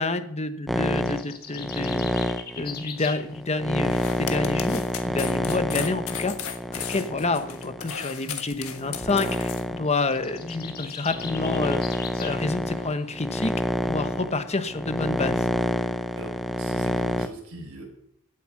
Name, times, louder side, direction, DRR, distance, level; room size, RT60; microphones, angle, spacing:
voice 1, 0.0-2.1 2.6-11.8 12.2-13.5 13.8-15.4, left 3 dB, 30° left, 9 dB, 1.0 m, -28 dB
sound 1, 0.7-8.0 8.7-17.3, left 1 dB, ahead, 0.6 m, -28 dB
sound 2, 0.9-3.3 9.9-12.4, left 6 dB, 45° left, 1.6 m, -39 dB
sound 3, 3.8-9.6, left 8 dB, 70° left, 1.5 m, -35 dB
voice 2, 16.2-17.8, right 1 dB, 75° right, 0 dB, 5.5 m, -42 dB
16.0 x 8.3 x 6.0 m, 0.76 s
head